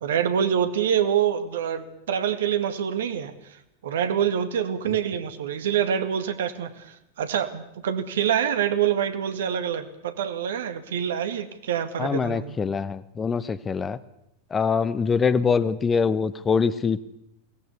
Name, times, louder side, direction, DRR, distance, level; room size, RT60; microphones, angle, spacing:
voice 1, 0.0-3.3 3.8-12.6, right 8 dB, 60° right, 10 dB, 2.0 m, -26 dB
voice 2, 12.0-14.0 14.5-17.0, left 5 dB, 20° left, 16 dB, 1.0 m, -24 dB
22.5 x 18.5 x 8.3 m, 0.83 s
figure-of-eight pair, 90°, 0 cm